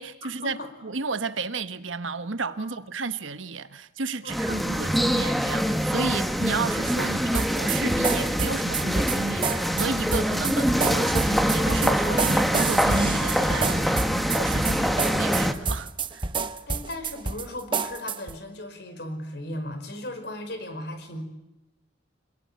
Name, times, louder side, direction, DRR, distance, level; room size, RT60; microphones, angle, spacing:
voice 1, 0.0-0.6 0.8-16.2, right 4 dB, 85° right, 1.3 m, -32 dB
voice 2, 4.2-4.8 16.7-21.2, left 1 dB, 55° left, 5.1 m, -37 dB
sound 1, 4.3-15.5, equal, ahead, 1.4 m, -24 dB
sound 2, 7.3-18.4, right 4 dB, 25° right, 0.9 m, -29 dB
26.5 x 21.5 x 9.6 m
head